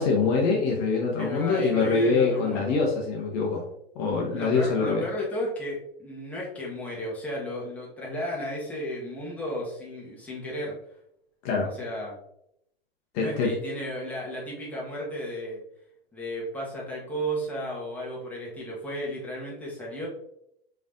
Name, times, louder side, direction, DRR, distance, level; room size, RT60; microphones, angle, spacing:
voice 1, 0.0-3.6 3.9-5.1 11.4-11.7 13.1-13.5, left 4 dB, 40° left, -1 dB, 1.0 m, -24 dB
voice 2, 1.2-2.7 4.3-10.8 11.6-12.2 13.2-15.6 16.1-20.1, equal, 5° left, -5 dB, 1.4 m, -34 dB
5.0 x 3.3 x 2.6 m, 0.76 s
figure-of-eight pair, 100°, 31 cm